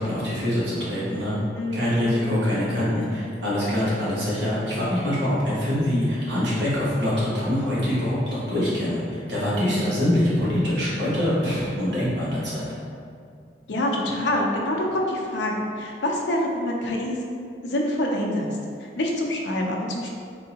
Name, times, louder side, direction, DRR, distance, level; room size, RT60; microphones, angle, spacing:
voice 1, 0.0-1.4 1.7-12.7, left 1 dB, 80° right, -8 dB, 1.2 m, -24 dB
voice 2, 1.5-2.1 3.9-4.2 13.7-17.2 17.6-18.5 19.0-20.1, left 1 dB, 80° left, -1 dB, 0.5 m, -26 dB
3.6 x 2.7 x 2.8 m, 2.3 s
head